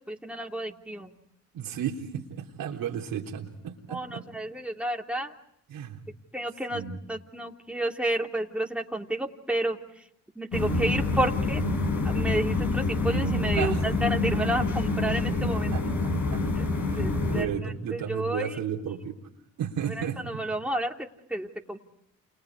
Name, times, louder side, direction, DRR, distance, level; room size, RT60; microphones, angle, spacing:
voice 1, 0.1-1.1 3.9-5.3 6.3-6.8 7.1-9.8 10.3-11.6 12.0-15.7 16.6-16.7 17.0-17.5 17.9-18.5 20.0-21.8, right 1 dB, 5° right, 1 dB, 3.1 m, -31 dB
voice 2, 1.5-4.3 5.7-6.0 6.7-7.0 13.6-13.8 15.2-15.3 15.7-16.4 16.9-19.2 19.6-20.4, right 8 dB, 70° right, 1 dB, 3.6 m, -33 dB
sound 1, 10.5-17.4, left 3 dB, 55° left, 6.6 m, -27 dB
29.5 x 29.0 x 4.8 m, 0.79 s
supercardioid pair, 60°, 35 cm